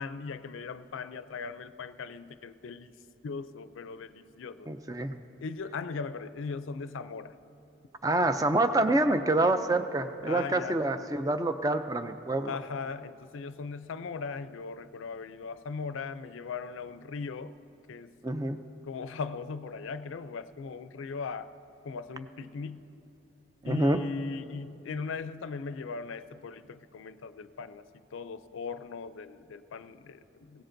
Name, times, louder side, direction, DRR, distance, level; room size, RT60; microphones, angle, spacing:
voice 1, 0.0-2.9 3.2-4.7 5.4-7.4 10.2-10.8 12.5-17.5 17.9-18.1 18.8-21.5 21.8-22.9 23.6-27.9 28.1-30.6, left 4 dB, 80° left, 13 dB, 0.4 m, -38 dB
voice 2, 4.7-5.2 8.0-12.5 18.2-18.6 23.6-24.0, right 2 dB, 20° right, 8 dB, 0.4 m, -27 dB
21.5 x 16.5 x 2.6 m, 2.8 s
head